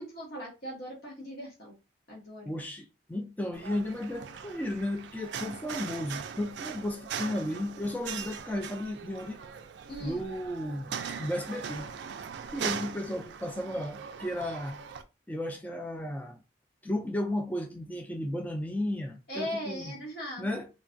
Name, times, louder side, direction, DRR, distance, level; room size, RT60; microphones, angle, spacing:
voice 1, 0.0-1.8 2.1-2.5 9.9-10.2 19.3-20.5, equal, 60° left, 1.0 m, -39 dB
voice 2, 2.4-9.4 10.0-10.9 11.2-11.9 12.5-14.8 15.3-16.4 16.8-20.0 20.4-20.7, left 1 dB, 10° left, 0.3 m, -34 dB
sound 1, 3.5-15.0, right 7 dB, 70° right, 0.3 m, -40 dB
3.1 x 2.2 x 2.5 m
head